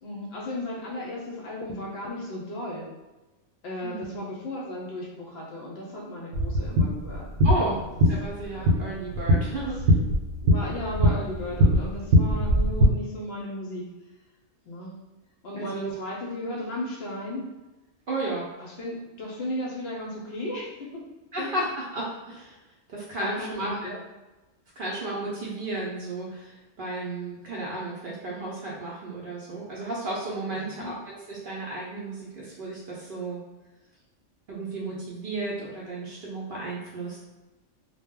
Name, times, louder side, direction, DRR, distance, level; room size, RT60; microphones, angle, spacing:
voice 1, 0.0-2.9 3.6-7.3 7.5-7.7 8.5-8.7 9.6-10.0 10.4-13.9 14.7-15.0 15.4-17.5 18.6-20.7 21.4-21.5 23.2-23.9 30.6-31.0, left 1 dB, 65° left, -2 dB, 0.7 m, -35 dB
voice 2, 3.8-4.3 7.4-7.8 8.1-9.9 15.6-15.9 18.1-18.5 21.3-22.6 22.9-24.0 24.8-33.4 34.5-37.2, right 2 dB, 60° right, -5 dB, 0.6 m, -33 dB
sound 1, 6.3-12.9, equal, 80° right, 1.0 m, -22 dB
2.1 x 2.0 x 3.5 m, 1.1 s
omnidirectional pair, 1.3 m